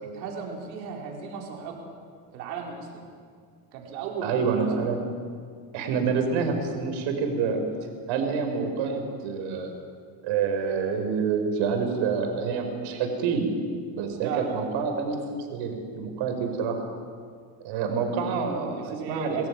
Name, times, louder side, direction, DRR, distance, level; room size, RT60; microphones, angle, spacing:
voice 1, 0.0-1.9 2.3-3.0 3.7-4.6 14.2-14.7 18.8-19.5, right 5 dB, 85° right, 0 dB, 4.6 m, -35 dB
voice 2, 4.2-5.0 5.7-7.6 8.1-9.7 10.2-13.5 14.0-15.2 15.5-16.8 17.6-19.5, right 5 dB, 65° right, 4 dB, 5.2 m, -27 dB
23.0 x 14.0 x 9.7 m, 2.1 s
supercardioid pair, 95°, 50 cm